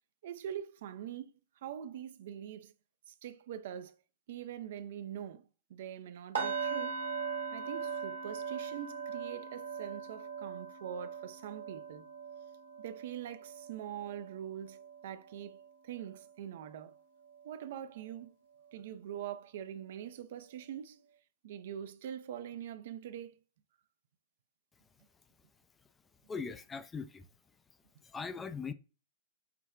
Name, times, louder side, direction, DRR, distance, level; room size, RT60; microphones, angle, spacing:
voice 1, 0.2-1.3 1.6-2.7 3.1-4.0 4.3-5.4 5.7-7.0 7.5-12.1 12.8-15.6 15.8-16.9 17.4-18.4 18.7-21.0 21.4-23.4, right 10 dB, 60° right, 0.4 m, -43 dB
sound 1, 6.3-16.3 16.6-16.9 17.3-17.5, right 5 dB, 75° right, 1.4 m, -40 dB
voice 2, 26.3-27.2 28.1-28.7, left 5 dB, 15° left, 0.3 m, -40 dB
5.8 x 2.2 x 2.4 m
figure-of-eight pair, 105°, 0 cm